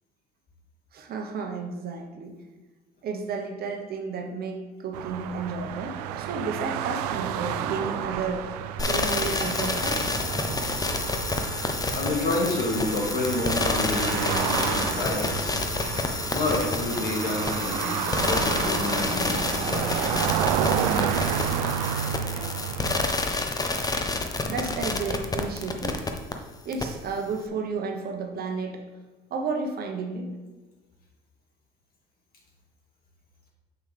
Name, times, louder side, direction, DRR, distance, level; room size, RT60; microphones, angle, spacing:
voice 1, 0.9-2.3 3.0-8.5 8.8-10.1 24.4-26.1 26.6-28.8 29.3-30.3, right 4 dB, 50° right, 4 dB, 1.0 m, -32 dB
sound 1, 4.9-23.1, right 9 dB, 85° right, 0.4 m, -31 dB
sound 2, 8.8-26.3 26.7-26.8, left 3 dB, 20° left, 0.8 m, -28 dB
voice 2, 11.7-15.5 16.3-20.2, left 2 dB, 50° left, -1 dB, 2.1 m, -29 dB
6.9 x 5.6 x 3.4 m, 1.2 s
supercardioid pair, 75°, 20 cm